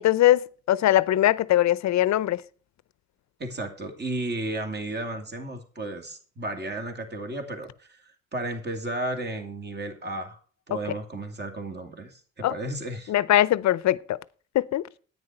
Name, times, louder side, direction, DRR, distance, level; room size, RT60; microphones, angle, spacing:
voice 1, 0.0-2.4 10.7-10.8 12.4-12.6 13.1-14.2 14.5-14.8, left 13 dB, 65° left, 0.6 m, -21 dB
voice 2, 3.4-10.4 10.7-13.1, right 2 dB, 35° right, 2.6 m, -33 dB
9.7 x 9.4 x 4.4 m
cardioid pair, 90°, 30 cm